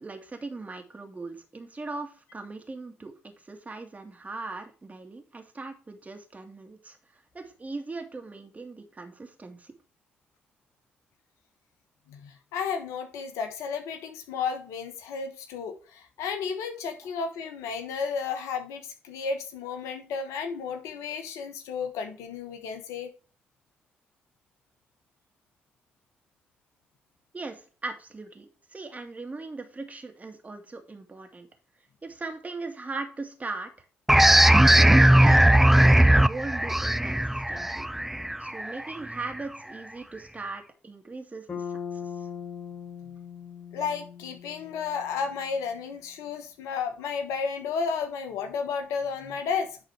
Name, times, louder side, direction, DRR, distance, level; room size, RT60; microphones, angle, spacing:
voice 1, 0.0-7.0 7.3-9.7 27.3-31.5 32.0-33.7 34.8-37.9 38.4-41.6, right 3 dB, 30° right, 2.2 m, -39 dB
voice 2, 12.1-23.1 43.7-49.8, left 5 dB, 70° left, 1.1 m, -33 dB
sound 1, 34.1-39.4, right 1 dB, 5° right, 0.4 m, -19 dB
Bass guitar, 41.5-45.6, left 7 dB, 50° left, 4.6 m, -39 dB
10.5 x 4.0 x 4.7 m
hypercardioid pair, 40°, 5 cm